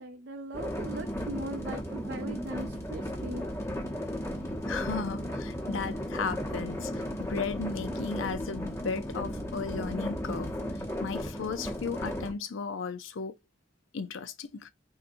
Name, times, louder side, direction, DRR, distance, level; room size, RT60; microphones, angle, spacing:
voice 1, 0.0-3.4, right 2 dB, 60° right, 0.5 m, -39 dB
sound 1, 0.5-12.3, equal, 15° left, 0.9 m, -35 dB
voice 2, 4.7-13.4 13.9-14.7, left 5 dB, 85° left, 0.5 m, -35 dB
3.9 x 2.7 x 2.6 m
head